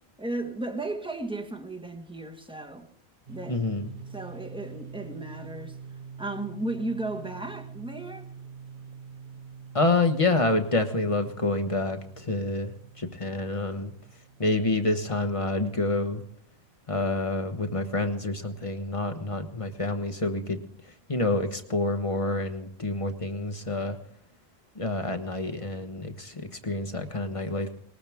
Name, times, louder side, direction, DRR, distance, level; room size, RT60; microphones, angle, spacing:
voice 1, 0.2-2.9 3.3-3.6 4.1-5.8 6.2-8.3, right 2 dB, 5° right, 1.4 m, -35 dB
sound 1, 3.3-16.8, right 6 dB, 50° right, 1.0 m, -46 dB
voice 2, 3.5-3.9 9.7-13.9 14.4-16.2 16.9-20.6 21.1-24.0 24.7-27.7, left 2 dB, 30° left, 1.3 m, -28 dB
20.5 x 19.5 x 3.6 m
omnidirectional pair, 1.1 m